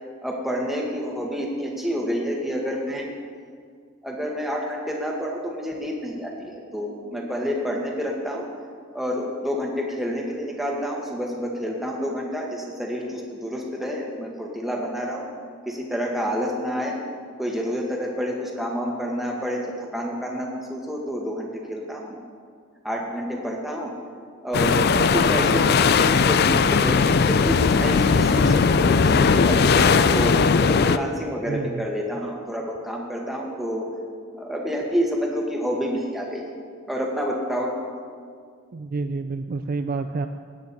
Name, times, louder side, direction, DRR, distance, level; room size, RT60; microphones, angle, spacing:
voice 1, 0.2-3.1 4.0-8.5 8.9-15.3 15.7-17.0 17.4-22.2 22.8-23.9 24.4-30.3 30.7-33.9 34.4-36.4 36.9-37.7, equal, ahead, -2 dB, 1.6 m, -28 dB
sound 1, 24.5-31.0, left 5 dB, 45° left, 0.4 m, -18 dB
voice 2, 31.5-31.9 38.7-40.3, right 3 dB, 40° right, 8 dB, 0.3 m, -29 dB
17.5 x 9.4 x 4.2 m, 2.1 s
head